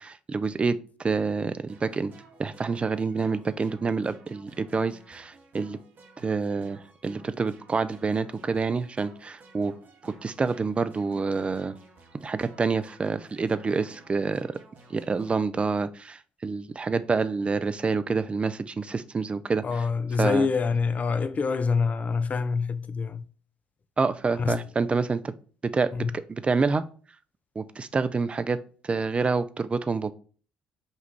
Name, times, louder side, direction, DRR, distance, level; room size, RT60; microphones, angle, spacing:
voice 1, 0.0-2.1 2.4-5.8 6.2-9.7 10.0-11.7 12.2-14.5 14.9-19.8 20.2-20.5 24.0-25.3 25.6-26.8 27.6-28.6 28.8-30.1, right 4 dB, 25° right, 0.3 m, -27 dB
sound 1, 1.7-15.4, right 3 dB, 50° right, 1.0 m, -54 dB
voice 2, 19.6-23.2 24.4-24.6 25.9-26.1, left 5 dB, 35° left, 0.4 m, -26 dB
5.1 x 2.4 x 3.1 m
figure-of-eight pair, 45°, 4 cm